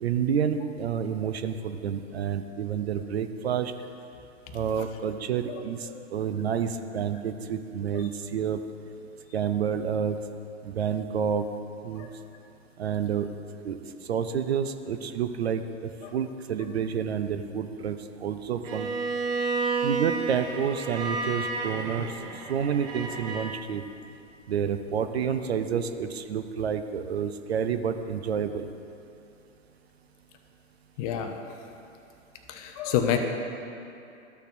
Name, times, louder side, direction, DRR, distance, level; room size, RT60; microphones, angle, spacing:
voice 1, 0.0-3.7 4.5-8.6 9.3-10.2 10.6-11.5 11.8-12.1 12.8-13.3 13.6-13.8 14.1-18.9 19.8-22.1 22.5-23.8 24.5-28.7, right 7 dB, 60° right, 9 dB, 0.6 m, -29 dB
voice 2, 5.5-6.1 12.0-12.1 16.0-16.1 31.0-31.3 32.5-33.2, left 9 dB, 30° left, 5 dB, 0.6 m, -29 dB
Bowed string instrument, 18.6-23.6, right 3 dB, 15° right, 0.4 m, -31 dB
13.5 x 6.4 x 2.6 m, 2.7 s
figure-of-eight pair, 100°, 36 cm